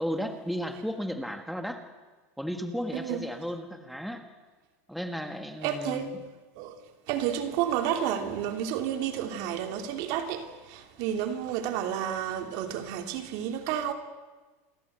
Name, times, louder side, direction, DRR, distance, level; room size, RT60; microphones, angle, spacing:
voice 1, 0.0-1.8 2.4-4.2 4.9-6.2, equal, ahead, 1.6 m, -34 dB
voice 2, 5.6-6.2 6.6-6.8 7.1-13.9, right 9 dB, 50° right, 3.0 m, -31 dB
28.5 x 21.5 x 8.0 m
supercardioid pair, 150°, 8 cm